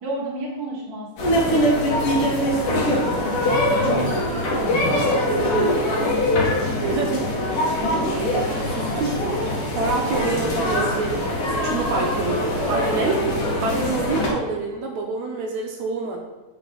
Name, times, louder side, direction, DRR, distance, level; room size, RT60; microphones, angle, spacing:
voice 1, 0.0-1.5 1.8-3.0 3.3-5.7, right 2 dB, 40° right, -3 dB, 1.6 m, -33 dB
sound 1, 1.2-14.3, left 1 dB, 50° left, 2.1 m, -22 dB
voice 2, 6.8-7.3 8.7-9.5 9.8-13.2 13.6-16.2, right 3 dB, 75° right, 0 dB, 2.1 m, -27 dB
8.1 x 5.3 x 3.9 m, 1.1 s
omnidirectional pair, 3.4 m